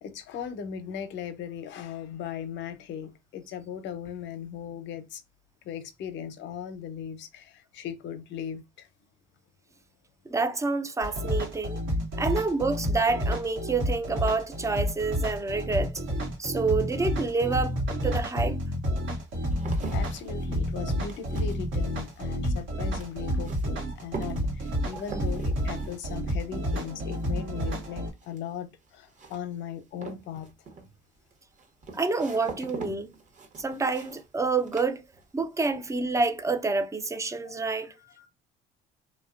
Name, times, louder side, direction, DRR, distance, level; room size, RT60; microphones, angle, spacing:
voice 1, 0.0-5.2 5.6-8.9 19.9-30.5 37.4-38.3, left 8 dB, 60° left, 0.6 m, -38 dB
voice 2, 10.3-11.8 12.2-15.9 16.4-18.6 24.9-25.0 31.9-33.1 33.6-35.0 35.3-37.9, right 3 dB, 15° right, 0.4 m, -28 dB
sound 1, 11.0-28.1, equal, 70° right, 0.9 m, -30 dB
sound 2, 18.7-35.6 35.9-36.5, right 4 dB, 35° right, 0.8 m, -45 dB
2.7 x 2.1 x 2.4 m
supercardioid pair, 80°, 21 cm